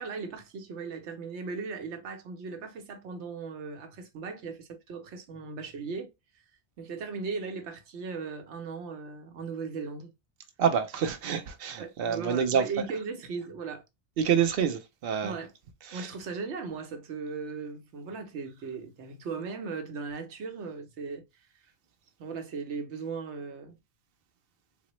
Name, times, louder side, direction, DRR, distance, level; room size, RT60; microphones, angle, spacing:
voice 1, 0.0-6.1 6.8-10.1 11.8-13.8 14.2-14.4 15.2-15.5 15.9-21.2 21.6-21.7 22.2-23.8, right 4 dB, 80° right, 1.0 m, -37 dB
voice 2, 10.6-12.7 14.2-15.4 15.9-16.1, right 7 dB, 65° right, 0.7 m, -27 dB
3.9 x 2.0 x 2.9 m
omnidirectional pair, 1.1 m